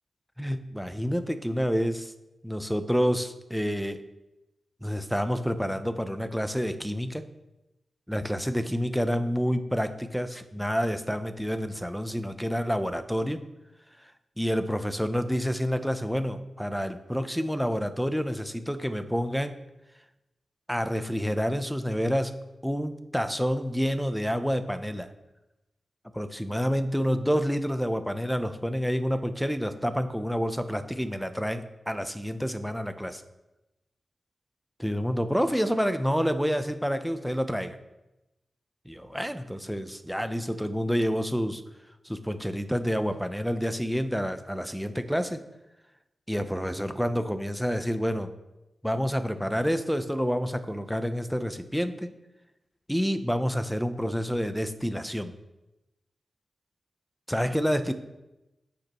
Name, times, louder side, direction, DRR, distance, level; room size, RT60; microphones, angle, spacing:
voice 1, 0.4-2.1 2.4-4.0 4.8-7.2 8.1-13.4 14.4-19.6 20.7-22.4 22.6-25.1 26.1-33.2 34.8-37.8 38.9-41.6 42.0-45.4 46.3-48.3 48.8-52.1 52.9-55.3 57.3-57.9, equal, ahead, 10 dB, 0.7 m, -28 dB
14.5 x 5.2 x 3.1 m, 0.98 s
cardioid pair, 75°, 0 cm